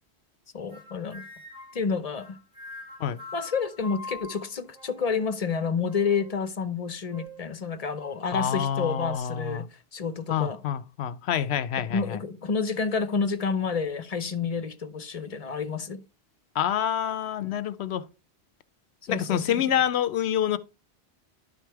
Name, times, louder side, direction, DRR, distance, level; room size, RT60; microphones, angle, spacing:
voice 1, 0.5-1.2 1.7-2.4 3.3-10.6 11.9-16.0 19.1-19.7, left 5 dB, 40° left, 0.8 m, -29 dB
sound 1, 0.7-1.8 2.2-5.4 5.8-6.4 7.1-7.5 8.0-8.2 8.8-9.2, left 1 dB, 40° right, 2.7 m, -44 dB
voice 2, 8.3-9.7 10.3-12.2 16.5-18.0 19.1-20.6, left 9 dB, 75° left, 0.9 m, -27 dB
11.0 x 4.1 x 4.6 m
omnidirectional pair, 1.1 m